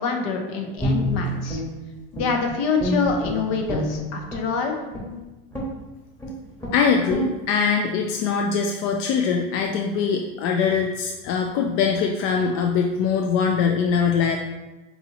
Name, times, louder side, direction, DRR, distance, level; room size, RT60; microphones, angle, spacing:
voice 1, 0.0-1.6 2.1-4.7, left 5 dB, 65° left, 3 dB, 0.9 m, -26 dB
Guitar, 0.8-2.5 2.8-4.5 4.9-5.1 5.5-5.8 6.2-6.3 6.6-6.8 7.1-7.3, equal, 10° left, 1.3 m, -27 dB
voice 2, 6.7-14.4, left 6 dB, 50° left, 2 dB, 0.4 m, -22 dB
5.3 x 2.8 x 2.9 m, 1.1 s
supercardioid pair, 120°, 29 cm